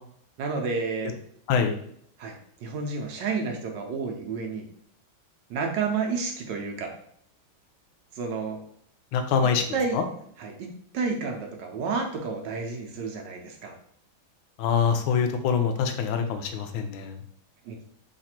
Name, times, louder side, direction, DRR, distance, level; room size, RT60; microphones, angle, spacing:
voice 1, 0.4-1.1 2.2-4.7 5.5-6.9 8.1-8.6 9.7-10.0 10.4-10.7 10.9-13.7 17.6-17.8, right 4 dB, 70° right, 2 dB, 1.2 m, -30 dB
voice 2, 9.1-9.6 9.9-10.0 14.6-17.1, left 6 dB, 90° left, 6 dB, 1.5 m, -24 dB
4.0 x 2.5 x 4.2 m, 0.68 s
omnidirectional pair, 2.2 m